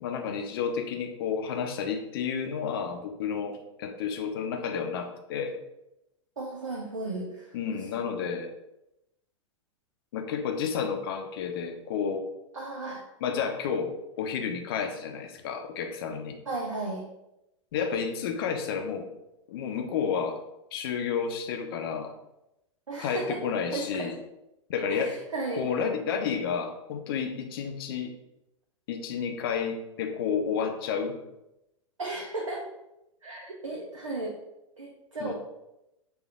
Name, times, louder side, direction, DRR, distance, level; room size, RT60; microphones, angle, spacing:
voice 1, 0.0-5.6 7.5-8.5 10.1-12.2 13.2-16.4 17.7-19.0 19.5-20.4 20.7-22.1 23.0-24.2 24.7-25.1 25.6-28.1 28.9-31.2 35.2-35.3, left 6 dB, 45° left, 4 dB, 0.6 m, -31 dB
voice 2, 6.4-7.8 12.5-13.0 16.5-17.0 22.9-23.4 23.7-24.1 24.9-25.6 32.0-32.6 33.2-34.3 34.8-35.3, right 2 dB, 75° right, -1 dB, 0.7 m, -34 dB
6.4 x 2.5 x 2.4 m, 0.89 s
figure-of-eight pair, 100°, 17 cm